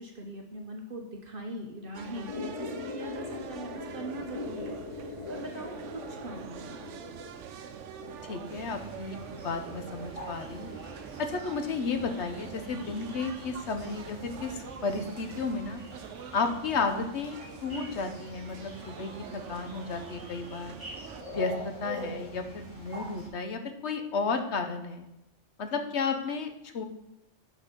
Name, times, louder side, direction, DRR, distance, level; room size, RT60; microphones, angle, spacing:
voice 1, 0.0-4.8 5.3-6.9, right 1 dB, 50° right, 2 dB, 1.1 m, -41 dB
sound 1, 1.9-21.2, right 7 dB, 80° right, 1.0 m, -45 dB
sound 2, 2.3-7.3, left 4 dB, 30° left, 0.7 m, -40 dB
voice 2, 8.3-10.7 11.2-15.8 16.3-20.8 21.3-25.0 25.6-26.9, left 4 dB, 65° left, 6 dB, 1.1 m, -33 dB
sound 3, 8.4-23.3, equal, 30° right, 2.6 m, -45 dB
6.4 x 6.4 x 5.1 m, 0.87 s
omnidirectional pair, 1.2 m